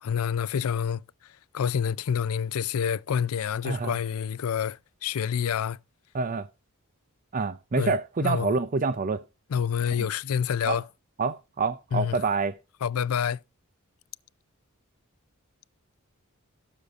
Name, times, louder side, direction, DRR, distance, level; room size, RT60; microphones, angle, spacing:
voice 1, 0.0-1.0 1.5-5.8 7.8-7.9 8.2-8.5 9.5-10.8 11.9-12.2 12.8-13.4, left 7 dB, 75° left, 0.4 m, -27 dB
voice 2, 3.6-4.0 6.1-6.5 7.3-9.2 10.6-10.8 11.2-12.6, right 4 dB, 40° right, 0.5 m, -27 dB
17.5 x 6.5 x 2.5 m
head